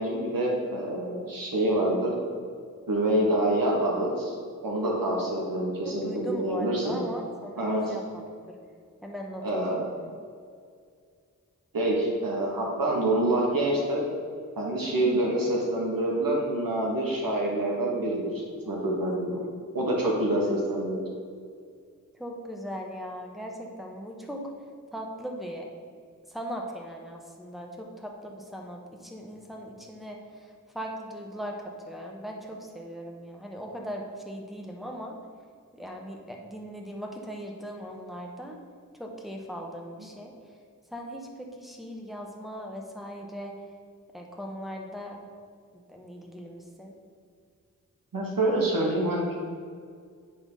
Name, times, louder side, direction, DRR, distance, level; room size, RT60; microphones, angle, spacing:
voice 1, 0.0-2.1 2.9-4.3 4.6-7.0 7.6-7.9 9.4-9.9 11.7-14.0 14.6-19.4 19.7-21.0 48.1-49.3, right 1 dB, 85° right, -2 dB, 1.3 m, -26 dB
voice 2, 5.8-8.3 9.0-9.8 20.4-20.6 22.2-24.4 24.9-25.6 26.3-35.2 35.7-38.6 38.9-40.3 40.9-43.5 44.1-45.2 45.9-47.0, equal, ahead, -1 dB, 1.2 m, -39 dB
8.4 x 3.5 x 5.5 m, 2.1 s
wide cardioid pair, 50°, 33 cm